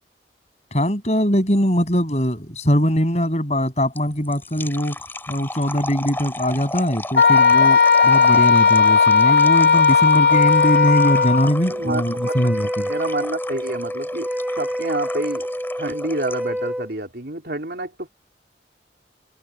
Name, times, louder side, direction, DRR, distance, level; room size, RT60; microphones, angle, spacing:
voice 1, 0.7-5.0 5.3-12.9, equal, 40° left, 7.4 m, -21 dB
sound 1, 4.0-16.6, left 1 dB, 10° left, 3.1 m, -35 dB
Wind instrument woodwind instrument, 7.1-11.5, left 5 dB, 75° left, 3.0 m, -15 dB
Wind instrument woodwind instrument 2, 10.3-16.9, equal, 5° right, 7.4 m, -27 dB
voice 2, 11.6-12.3 12.9-14.3 14.6-15.5 15.8-18.1, right 2 dB, 65° right, 3.9 m, -28 dB
head